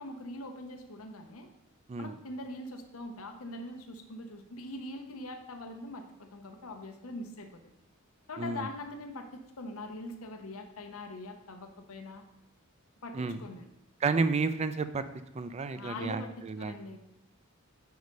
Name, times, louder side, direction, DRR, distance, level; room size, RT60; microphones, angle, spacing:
voice 1, 0.0-1.5 2.0-7.5 8.3-12.2 13.0-13.7 15.7-17.0, left 1 dB, 75° left, 5 dB, 0.7 m, -42 dB
voice 2, 8.4-8.7 13.1-13.4 14.0-15.0 15.3-16.7, right 4 dB, 30° right, 12 dB, 0.4 m, -31 dB
5.4 x 4.7 x 5.2 m, 0.91 s
head